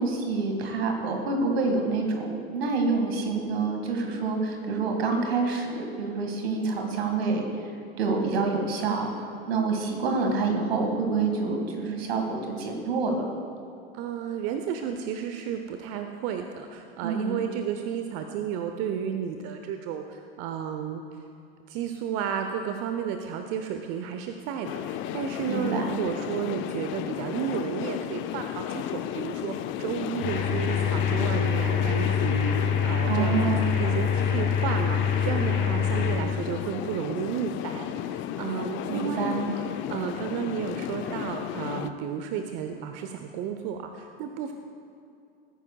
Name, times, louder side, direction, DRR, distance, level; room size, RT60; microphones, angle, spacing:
voice 1, 0.0-7.4 8.0-13.3 17.0-17.4 25.5-26.0 33.1-33.7 38.9-39.5, right 4 dB, 75° right, 3 dB, 2.0 m, -27 dB
voice 2, 13.9-21.2 21.7-33.5 33.8-39.5 39.9-44.5, right 7 dB, 50° right, 6 dB, 0.8 m, -32 dB
sound 1, 24.6-41.9, left 11 dB, 40° left, 0.6 m, -34 dB
sound 2, 30.2-36.2, left 7 dB, 60° left, 2.3 m, -25 dB
20.0 x 9.7 x 2.3 m, 2.6 s
hypercardioid pair, 85°, 31 cm